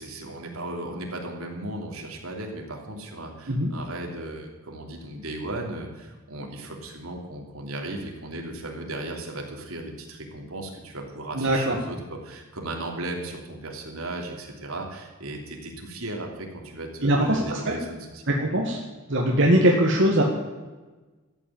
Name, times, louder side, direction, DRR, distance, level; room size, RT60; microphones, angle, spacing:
voice 1, 0.0-18.2, right 2 dB, 80° right, 2 dB, 3.1 m, -36 dB
voice 2, 11.4-11.8 17.0-17.8 18.3-18.8 19.1-20.2, right 1 dB, 55° right, -1 dB, 1.8 m, -21 dB
13.5 x 8.9 x 8.9 m, 1.3 s
head